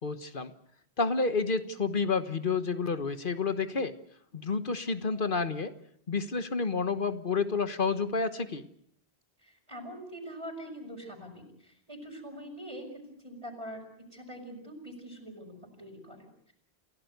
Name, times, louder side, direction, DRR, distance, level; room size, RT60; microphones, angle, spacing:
voice 1, 0.0-0.5 1.0-3.9 4.3-5.7 6.1-8.7, left 4 dB, 55° left, 10 dB, 1.4 m, -30 dB
voice 2, 9.4-13.8 14.1-16.5, equal, 30° right, -2 dB, 5.4 m, -44 dB
28.5 x 16.5 x 8.1 m, 0.69 s
omnidirectional pair, 1.0 m